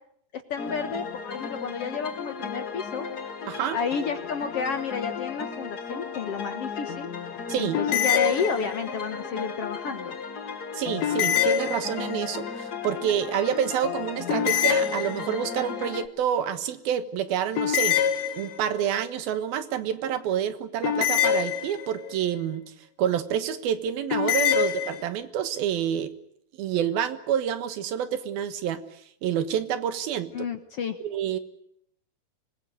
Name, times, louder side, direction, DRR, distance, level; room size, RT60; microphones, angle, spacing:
voice 1, 0.3-3.1 3.7-7.1 7.6-10.2 30.3-31.0, left 5 dB, 60° left, 8 dB, 1.7 m, -31 dB
sound 1, 0.6-16.1, left 6 dB, 40° left, 1.4 m, -35 dB
voice 2, 3.5-3.8 7.5-7.8 10.7-18.0 18.4-22.6 23.0-26.1 26.6-28.8 29.2-30.3 31.0-31.4, right 9 dB, 90° right, 11 dB, 3.3 m, -28 dB
sound 2, 7.7-9.0 11.0-12.3 14.3-15.6 17.6-18.9 20.8-22.1 24.1-25.0, left 9 dB, 80° left, 3.6 m, -25 dB
25.0 x 20.5 x 9.5 m, 0.72 s
omnidirectional pair, 4.1 m